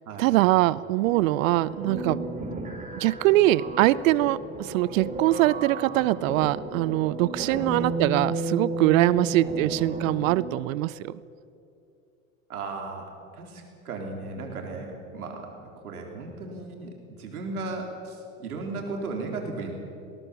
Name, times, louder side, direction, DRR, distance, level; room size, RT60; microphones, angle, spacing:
voice 1, 0.2-2.2 2.9-11.1, right 17 dB, 65° right, 20 dB, 0.6 m, -23 dB
sound 1, 1.1-10.6, right 2 dB, 15° right, 4.6 m, -33 dB
voice 2, 12.5-13.0 13.3-16.9 17.2-19.8, right 3 dB, 85° right, 1 dB, 4.2 m, -36 dB
19.5 x 18.5 x 7.3 m, 2.6 s
hypercardioid pair, 95°, 43 cm